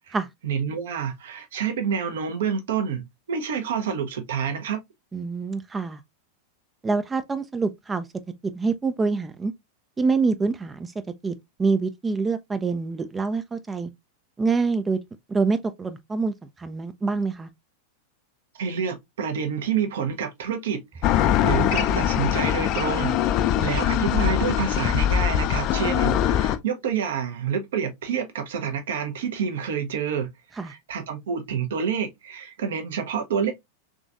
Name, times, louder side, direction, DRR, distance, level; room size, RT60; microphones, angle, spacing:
voice 1, 0.4-3.0 3.3-4.8 18.6-23.2 23.6-33.5, right 7 dB, 60° right, 0.9 m, -28 dB
voice 2, 5.1-6.0 6.8-8.1 8.5-9.5 10.0-10.9 11.2-11.3 11.6-13.9 14.4-15.0 15.3-17.5 23.5-23.6 30.6-30.7, right 4 dB, 15° right, 0.4 m, -26 dB
sound 1, 21.0-26.6, left 10 dB, 40° left, 0.5 m, -22 dB
3.7 x 3.3 x 2.4 m
figure-of-eight pair, 90°, 0 cm